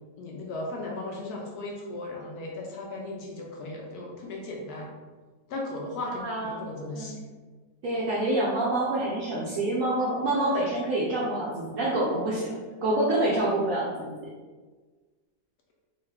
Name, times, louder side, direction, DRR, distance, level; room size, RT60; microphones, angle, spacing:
voice 1, 0.2-4.9 5.5-7.2, left 2 dB, 70° left, -1 dB, 1.0 m, -36 dB
voice 2, 6.1-6.6 6.9-7.1 7.8-12.6 12.8-14.3, right 1 dB, 65° right, -5 dB, 0.9 m, -27 dB
3.8 x 2.3 x 3.2 m, 1.4 s
omnidirectional pair, 1.9 m